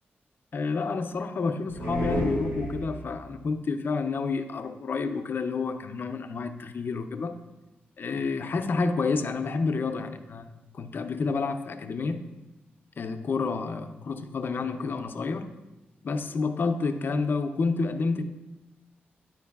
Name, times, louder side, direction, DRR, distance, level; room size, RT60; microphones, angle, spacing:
voice 1, 0.5-7.3 8.0-10.5 10.7-12.3 13.0-15.5 16.0-18.2, left 4 dB, 60° left, 8 dB, 0.4 m, -29 dB
sound 1, 1.7-3.3, equal, 75° right, 1.6 m, -31 dB
9.3 x 4.5 x 2.3 m, 1.1 s
cardioid pair, 75°, 4 cm